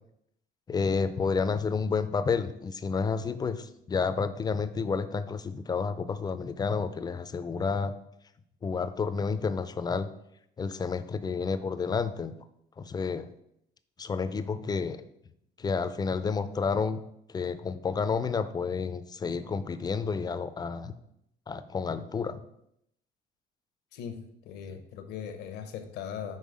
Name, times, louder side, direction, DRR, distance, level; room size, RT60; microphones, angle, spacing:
voice 1, 0.7-7.9 8.6-10.1 10.6-12.3 12.8-13.3 14.0-15.0 15.6-17.0 17.3-20.9 21.5-22.4, left 5 dB, 25° left, 12 dB, 0.4 m, -30 dB
voice 2, 23.9-26.4, left 8 dB, 85° left, 8 dB, 0.8 m, -39 dB
5.6 x 3.9 x 4.9 m, 0.78 s
cardioid pair, 110°, 17 cm